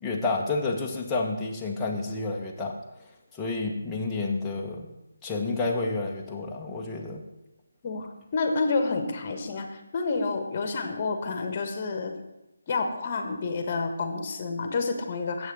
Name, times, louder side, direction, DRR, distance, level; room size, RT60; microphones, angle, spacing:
voice 1, 0.0-2.8 3.3-4.9 5.2-7.2, left 3 dB, 10° left, -3 dB, 1.3 m, -30 dB
voice 2, 7.8-12.1 12.7-15.5, left 4 dB, 35° left, 6 dB, 1.5 m, -29 dB
8.0 x 6.5 x 7.9 m, 0.93 s
figure-of-eight pair, 155°, 0 cm